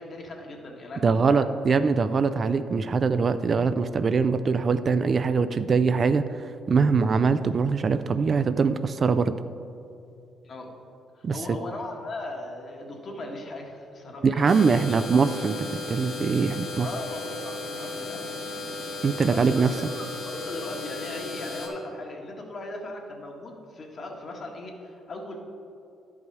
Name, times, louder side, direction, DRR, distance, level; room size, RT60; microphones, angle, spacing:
voice 1, 0.0-1.5 10.4-10.7 11.1-15.1 16.8-18.7 19.3-25.4, left 2 dB, 50° left, 1 dB, 1.5 m, -38 dB
voice 2, 1.0-6.2 6.7-9.4 11.2-11.6 14.2-16.9 19.0-19.7, right 5 dB, 45° right, 11 dB, 0.3 m, -23 dB
sound 1, 14.5-21.7, left 2 dB, 75° left, 1.8 m, -35 dB
11.0 x 5.4 x 4.6 m, 2.6 s
cardioid pair, 90°, 0 cm